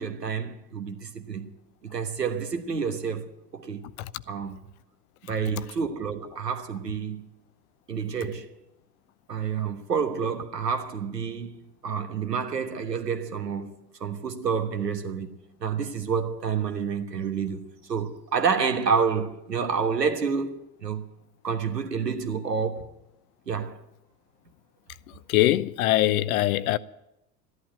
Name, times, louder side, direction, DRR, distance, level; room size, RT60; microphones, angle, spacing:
voice 1, 0.0-1.5 1.8-3.9 4.3-4.6 5.3-7.2 7.9-8.5 9.3-13.7 14.0-21.0 21.4-22.9 23.5-23.8, right 6 dB, 85° right, 1.3 m, -29 dB
voice 2, 25.3-26.8, left 14 dB, 60° left, 0.8 m, -22 dB
13.5 x 11.5 x 9.1 m
figure-of-eight pair, 75°, 47 cm